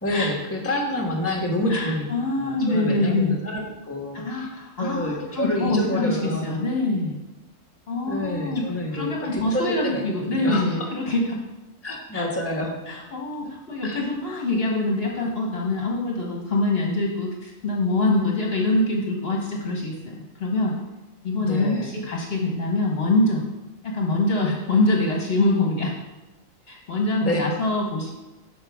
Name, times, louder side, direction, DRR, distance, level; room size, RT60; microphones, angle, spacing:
voice 1, 0.0-2.0 2.4-4.5 4.8-6.6 8.1-10.9 11.8-12.7 13.8-14.0 21.3-21.9 27.2-27.4, left 1 dB, 10° left, 0 dB, 1.3 m, -28 dB
voice 2, 1.7-3.4 4.1-7.1 7.9-8.6 8.9-11.4 12.1-12.3 12.9-20.8 21.2-23.4 23.8-25.9 26.7-28.1, left 2 dB, 50° left, -1 dB, 1.3 m, -24 dB
12.0 x 5.2 x 3.5 m, 1.0 s
omnidirectional pair, 1.4 m